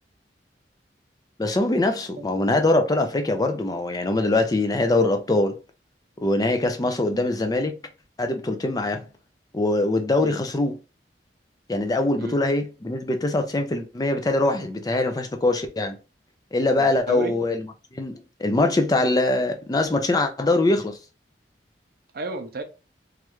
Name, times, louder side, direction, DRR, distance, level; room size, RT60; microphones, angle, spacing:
voice 1, 1.4-5.6 6.2-7.7 8.2-9.0 9.5-10.8 11.7-16.0 16.5-17.6 17.9-21.0, left 2 dB, 20° left, 0.4 m, -23 dB
voice 2, 16.8-17.3 22.1-22.6, right 3 dB, 55° right, 0.6 m, -32 dB
3.1 x 2.4 x 3.0 m
head